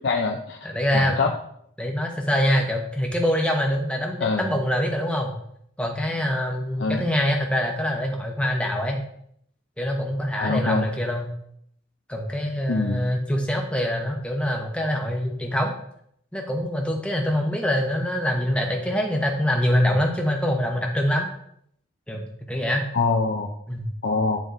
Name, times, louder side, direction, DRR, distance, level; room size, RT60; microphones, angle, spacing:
voice 1, 0.0-0.6 0.9-1.3 4.2-4.5 6.8-7.1 10.4-10.9 12.7-13.0 22.9-23.5 24.0-24.4, left 4 dB, 60° left, 1 dB, 0.5 m, -24 dB
voice 2, 0.6-1.2 1.8-5.3 5.8-9.0 9.8-11.3 12.1-15.8 16.3-21.3 22.1-22.8 23.7-23.9, equal, 5° left, 1 dB, 0.7 m, -24 dB
10.5 x 3.5 x 2.6 m, 0.70 s
head